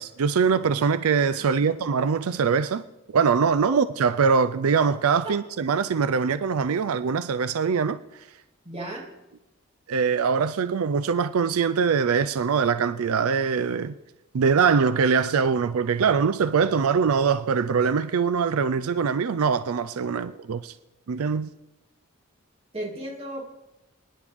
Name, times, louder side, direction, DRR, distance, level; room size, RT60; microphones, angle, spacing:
voice 1, 0.0-2.8 3.1-8.0 9.9-13.9 14.3-20.7 21.1-21.5, right 6 dB, 85° right, 0.4 m, -23 dB
voice 2, 1.4-1.7 3.6-3.8 5.2-5.4 8.6-9.1 22.7-23.4, right 1 dB, 25° right, 2.4 m, -35 dB
27.5 x 10.0 x 3.6 m
head